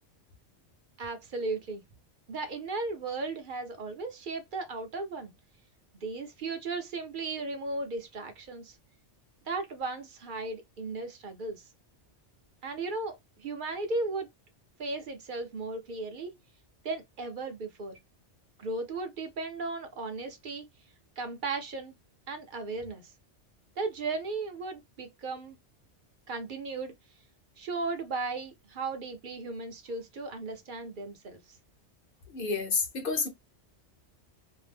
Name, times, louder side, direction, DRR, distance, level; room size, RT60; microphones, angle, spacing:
voice 1, 1.0-1.8 2.3-5.3 6.0-8.8 9.5-11.7 12.6-14.3 14.8-16.4 16.8-18.0 18.6-20.7 21.2-21.9 22.3-23.1 23.8-25.6 26.3-26.9 27.6-31.6, right 3 dB, 50° right, 0.7 m, -36 dB
voice 2, 32.3-33.3, left 4 dB, 55° left, 0.9 m, -29 dB
2.7 x 2.0 x 3.3 m
omnidirectional pair, 1.2 m